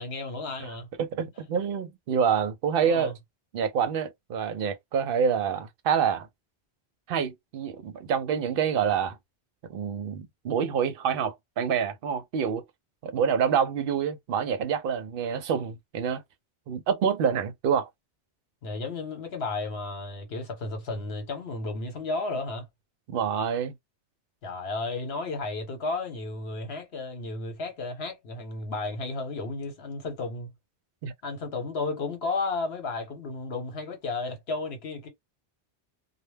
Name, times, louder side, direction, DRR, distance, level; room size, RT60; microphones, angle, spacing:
voice 1, 0.0-0.9 2.8-3.1 18.6-22.7 24.4-30.5 31.2-35.1, left 3 dB, 65° left, 1.1 m, -33 dB
voice 2, 1.0-3.1 3.5-6.3 7.1-9.2 9.7-12.6 13.0-16.2 16.7-17.9 23.1-23.7 31.0-31.1, right 7 dB, 60° right, 0.7 m, -27 dB
2.2 x 2.1 x 3.1 m
omnidirectional pair, 1.2 m